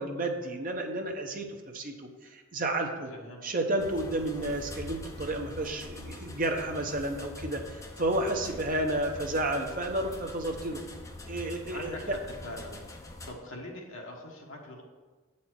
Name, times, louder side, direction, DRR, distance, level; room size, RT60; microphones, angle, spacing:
voice 1, 0.0-3.1 3.4-10.8 11.3-12.2, right 1 dB, 40° right, 3 dB, 0.8 m, -31 dB
voice 2, 3.1-3.5 11.7-12.8 13.3-14.8, left 1 dB, 60° left, 0 dB, 1.3 m, -42 dB
sound 1, 3.8-13.3, left 2 dB, 15° left, 0.6 m, -44 dB
7.6 x 4.2 x 6.1 m, 1.3 s
head